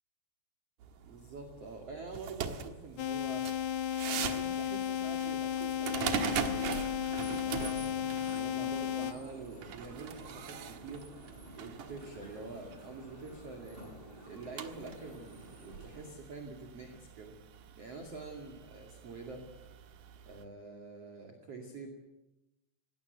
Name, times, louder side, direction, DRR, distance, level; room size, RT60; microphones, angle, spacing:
sound 1, 0.8-20.4, right 8 dB, 60° right, 2.1 m, -42 dB
voice 1, 1.0-3.5 4.1-6.9 7.4-11.1 11.6-14.0 14.3-17.4 17.8-19.5 20.3-21.9, right 3 dB, 40° right, 2 dB, 2.9 m, -46 dB
sound 2, 3.0-9.1, left 10 dB, 75° left, 1.7 m, -34 dB
sound 3, 7.0-16.1, right 1 dB, 10° right, 5.8 m, -52 dB
19.0 x 18.0 x 9.4 m, 0.97 s
omnidirectional pair, 5.0 m